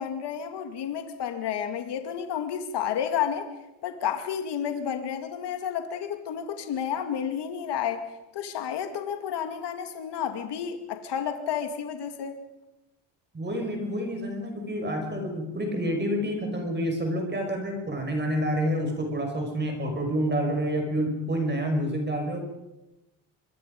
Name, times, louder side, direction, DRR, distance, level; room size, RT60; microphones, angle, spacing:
voice 1, 0.0-3.5 3.8-8.0 8.3-12.4, left 8 dB, 60° left, 6 dB, 2.4 m, -31 dB
voice 2, 13.3-22.4, equal, 25° right, 3 dB, 5.6 m, -28 dB
24.5 x 23.5 x 5.3 m, 0.97 s
cardioid pair, 115°, 46 cm